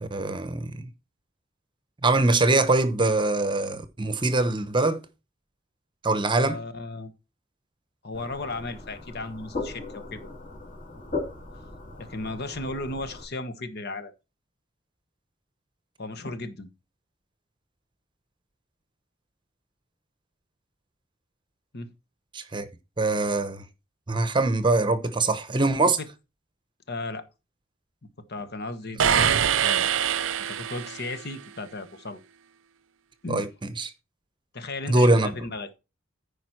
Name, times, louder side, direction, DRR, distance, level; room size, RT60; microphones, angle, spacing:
voice 1, 0.0-0.9 2.0-5.0 6.0-6.6 22.3-22.7 23.0-23.6 24.1-26.0 33.3-33.9 34.9-35.3, right 2 dB, 25° right, 0.9 m, -23 dB
voice 2, 6.4-7.1 8.0-10.3 12.0-14.1 16.0-16.7 21.7-21.9 26.0-26.1 26.9-27.2 28.0-29.8 30.4-32.2 33.2-33.5 34.5-35.7, left 2 dB, 55° left, 1.2 m, -35 dB
sound 1, 8.1-13.2, left 3 dB, 40° left, 3.5 m, -38 dB
sound 2, 29.0-31.2, right 8 dB, 70° right, 0.6 m, -24 dB
14.0 x 5.1 x 4.5 m
head